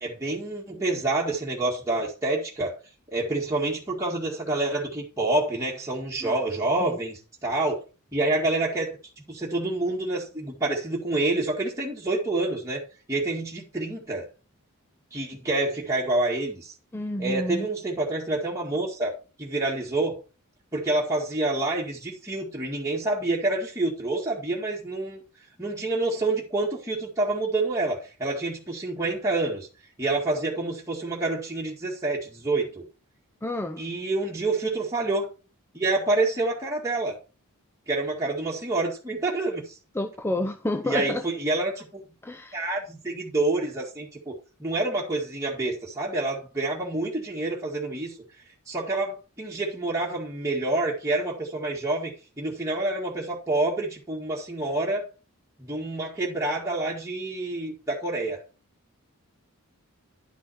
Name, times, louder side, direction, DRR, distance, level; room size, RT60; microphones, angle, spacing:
voice 1, 0.0-2.8 3.1-7.8 8.1-9.0 9.3-12.8 13.1-14.3 15.1-16.7 17.2-20.2 20.7-25.2 25.6-29.7 30.0-32.8 33.8-35.3 35.7-37.2 37.9-39.8 40.8-42.0 42.5-44.3 44.6-48.2 48.7-55.0 55.6-58.4, right 2 dB, 15° right, 1.8 m, -27 dB
voice 2, 16.9-17.7 33.4-33.8 39.9-41.2 42.2-42.6, left 1 dB, 10° left, 0.5 m, -30 dB
11.0 x 6.1 x 4.3 m
head